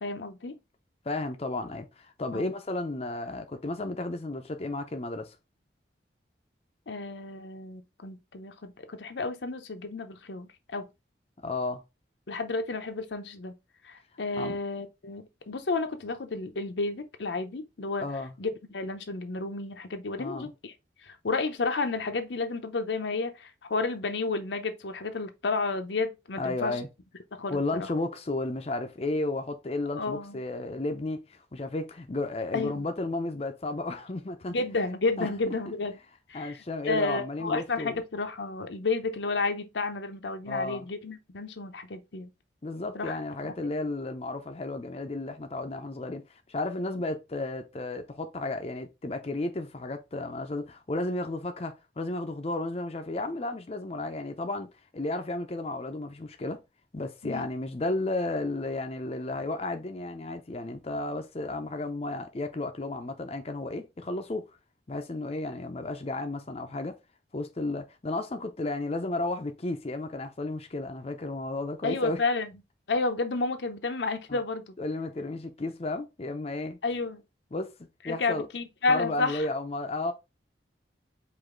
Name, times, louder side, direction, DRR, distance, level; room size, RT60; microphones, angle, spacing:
voice 1, 0.0-0.6 2.3-2.5 6.9-10.9 12.3-13.5 13.8-18.1 18.4-20.7 21.0-26.8 27.3-27.9 30.0-30.4 32.5-32.8 34.5-36.0 36.3-42.3 42.9-43.2 43.4-43.7 57.2-57.5 71.8-72.6 72.9-74.7 76.8-77.2 78.0-79.5, left 3 dB, 80° left, 0.7 m, -31 dB
voice 2, 1.1-5.4 11.4-11.8 14.4-14.6 18.0-18.3 20.2-20.5 26.4-26.9 27.5-34.6 35.2-35.3 35.7-35.8 36.3-38.0 40.5-40.9 42.6-56.6 56.9-64.4 64.9-66.9 67.3-72.2 74.3-74.4 74.8-76.8 77.5-77.7 78.0-78.5 78.9-80.1, left 2 dB, 35° left, 0.5 m, -33 dB
5.0 x 2.6 x 3.7 m
head